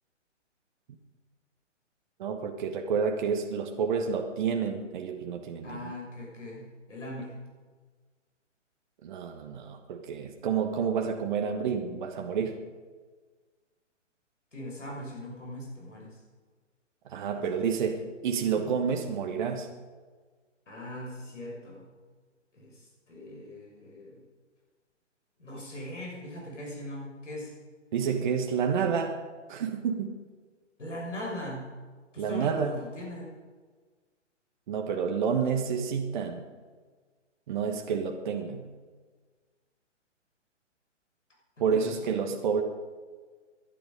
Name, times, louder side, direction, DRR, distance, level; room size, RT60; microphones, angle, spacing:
voice 1, 2.2-5.9 9.0-12.6 17.1-19.7 27.9-29.2 29.5-30.2 32.2-32.8 34.7-36.4 37.5-38.7 41.6-42.6, right 6 dB, 40° right, 4 dB, 1.4 m, -29 dB
voice 2, 5.6-7.4 14.5-16.2 17.3-17.5 18.5-18.7 20.7-21.9 22.5-24.2 25.4-27.5 30.8-31.7 32.1-33.3 41.7-42.0, left 1 dB, 75° left, -3 dB, 6.3 m, -40 dB
21.0 x 11.5 x 5.3 m, 1.5 s
figure-of-eight pair, 130°, 37 cm